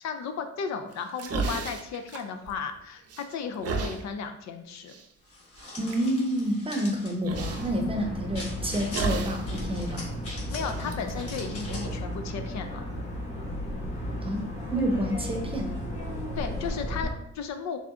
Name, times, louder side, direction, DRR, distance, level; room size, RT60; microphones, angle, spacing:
voice 1, 0.0-4.9 10.5-12.8 16.4-17.8, left 6 dB, 65° left, 7 dB, 0.5 m, -35 dB
sound 1, 0.9-2.8 3.1-4.0 4.9-5.0 5.6-6.0 7.2-7.7 8.9-9.5 9.8-9.9 10.6-12.1, right 4 dB, 55° right, 0.6 m, -33 dB
sound 2, 5.3-7.2 8.3-9.1 9.5-10.8 11.2-12.0, left 2 dB, 50° left, 1.2 m, -42 dB
voice 2, 5.8-10.1 14.2-15.7, equal, 20° right, 3 dB, 0.7 m, -29 dB
sound 3, 7.3-17.1, equal, 20° left, 1.3 m, -34 dB
3.9 x 3.4 x 2.5 m, 0.76 s
cardioid pair, 90°, 30 cm